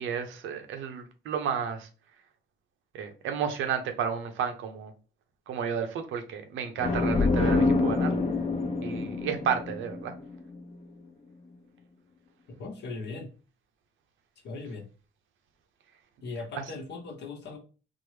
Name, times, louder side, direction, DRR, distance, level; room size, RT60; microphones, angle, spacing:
voice 1, 0.0-1.9 2.9-4.9 5.5-8.2 8.8-10.1 16.5-16.6, right 7 dB, 80° right, 6 dB, 0.7 m, -32 dB
sound 1, 6.8-10.5, left 3 dB, 35° left, 0.6 m, -26 dB
voice 2, 12.6-13.3 14.4-14.9 16.2-17.6, left 3 dB, 60° left, 3 dB, 0.9 m, -38 dB
3.6 x 2.0 x 3.1 m, 0.35 s
cardioid pair, 90°, 20 cm